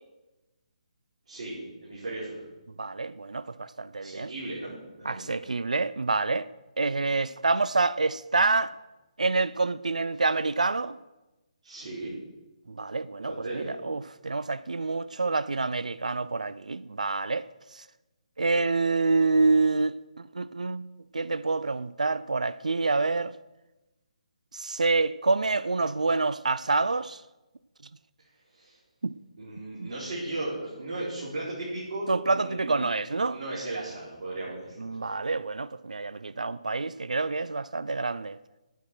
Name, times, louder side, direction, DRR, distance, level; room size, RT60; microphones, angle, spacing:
voice 1, 1.3-2.4 4.0-5.4 11.6-12.1 13.2-13.7 28.5-28.8 29.4-32.9 33.3-35.0, right 2 dB, 60° right, 4.3 m, -36 dB
voice 2, 2.8-4.3 5.1-6.5 6.8-8.7 9.2-11.0 12.7-17.5 17.7-17.8 18.4-20.9 21.1-23.3 24.5-27.2 29.0-29.1 29.8-29.9 32.1-33.4 34.8-38.4, right 3 dB, 85° right, 0.4 m, -27 dB
10.0 x 9.3 x 6.2 m
figure-of-eight pair, 145°, 4 cm